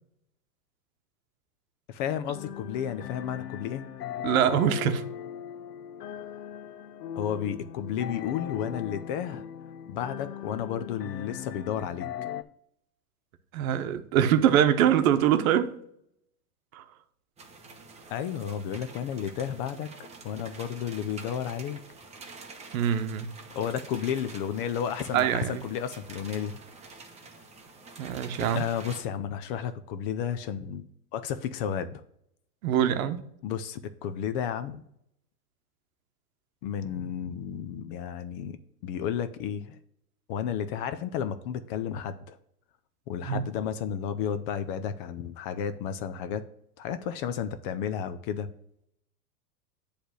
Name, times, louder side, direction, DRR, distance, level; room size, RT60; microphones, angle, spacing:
voice 1, 1.9-3.8 7.2-9.4 9.9-12.1 18.1-19.9 20.2-21.8 23.6-26.6 28.5-30.9 31.1-32.0 33.4-34.8 36.6-38.6 38.8-39.8 40.3-42.4 43.1-46.4 46.8-48.5, left 8 dB, 35° left, 0.5 m, -32 dB
sound 1, 2.3-12.4, left 10 dB, 90° left, 0.6 m, -39 dB
voice 2, 4.2-5.0 13.5-15.7 16.7-16.8 22.7-23.3 25.1-25.6 28.0-28.6 32.6-33.2 43.2-43.4, right 10 dB, 60° right, 0.9 m, -24 dB
sound 2, 17.4-29.0, right 3 dB, 15° right, 1.0 m, -47 dB
7.9 x 3.4 x 6.2 m
hypercardioid pair, 120°, 46 cm